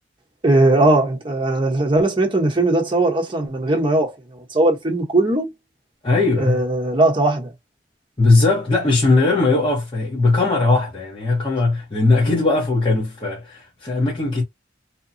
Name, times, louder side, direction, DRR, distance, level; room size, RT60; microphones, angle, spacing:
voice 1, 0.4-5.5 6.4-7.5, right 2 dB, 25° right, 1.0 m, -19 dB
voice 2, 6.0-6.6 8.2-14.4, left 3 dB, 30° left, 1.0 m, -19 dB
2.8 x 2.2 x 2.6 m
head